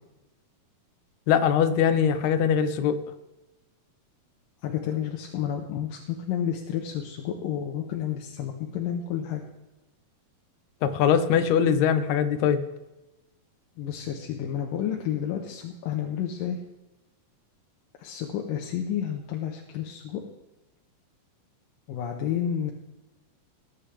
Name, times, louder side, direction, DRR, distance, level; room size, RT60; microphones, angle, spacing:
voice 1, 1.3-3.0 10.8-12.6, left 8 dB, 70° left, 9 dB, 2.0 m, -22 dB
voice 2, 4.6-9.4 13.8-16.6 18.0-20.2 21.9-22.7, left 9 dB, 90° left, 1 dB, 2.7 m, -30 dB
19.5 x 9.9 x 3.3 m, 1.0 s
omnidirectional pair, 3.9 m